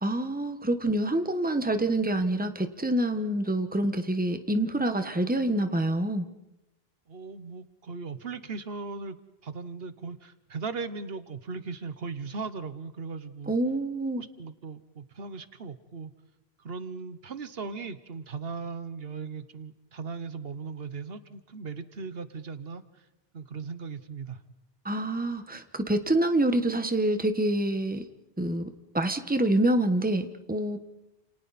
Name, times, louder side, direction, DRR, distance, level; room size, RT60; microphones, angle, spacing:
voice 1, 0.0-6.3 13.5-14.2 24.8-28.0 28.4-30.8, right 1 dB, 10° right, 8 dB, 1.2 m, -26 dB
voice 2, 7.1-9.2 9.4-13.5 14.2-16.1 16.6-23.0 23.3-24.4, right 4 dB, 70° right, 12 dB, 1.2 m, -38 dB
30.0 x 28.5 x 4.2 m, 0.94 s
omnidirectional pair, 1.0 m